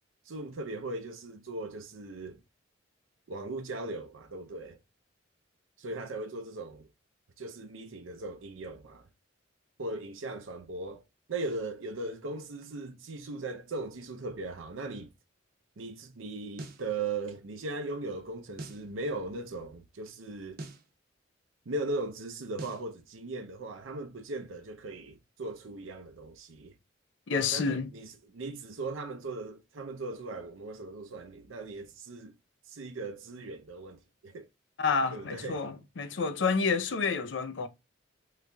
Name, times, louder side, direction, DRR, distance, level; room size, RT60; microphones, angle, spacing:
voice 1, 0.3-2.4 3.3-4.8 5.8-6.9 7.4-9.1 9.8-11.0 11.3-15.1 15.8-20.6 21.7-26.7 27.5-32.4 32.7-34.5 35.1-35.6, right 2 dB, 85° right, 0.6 m, -38 dB
sound 1, 16.6-16.9 18.6-18.9 20.6-20.9 22.6-22.9, right 2 dB, 50° right, 0.7 m, -42 dB
voice 2, 27.3-27.9 34.8-37.7, left 5 dB, 65° left, 0.6 m, -29 dB
3.8 x 3.1 x 2.2 m
head